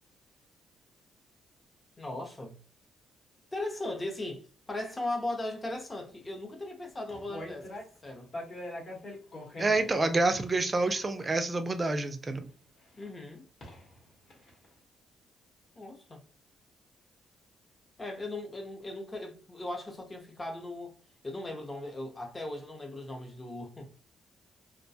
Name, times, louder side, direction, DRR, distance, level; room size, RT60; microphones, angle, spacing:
voice 1, 2.0-2.6 3.5-7.7 8.0-8.3 12.9-13.5 15.8-16.2 18.0-20.9 21.2-23.9, left 2 dB, 25° left, 0.7 m, -38 dB
sound 1, 7.1-8.1 8.3-12.0 13.0-13.1 13.6-14.0 14.3-14.7, left 1 dB, 50° left, 1.0 m, -44 dB
voice 2, 9.6-12.5, right 2 dB, 25° right, 0.4 m, -28 dB
2.3 x 2.1 x 2.7 m
cardioid pair, 90°, 0 cm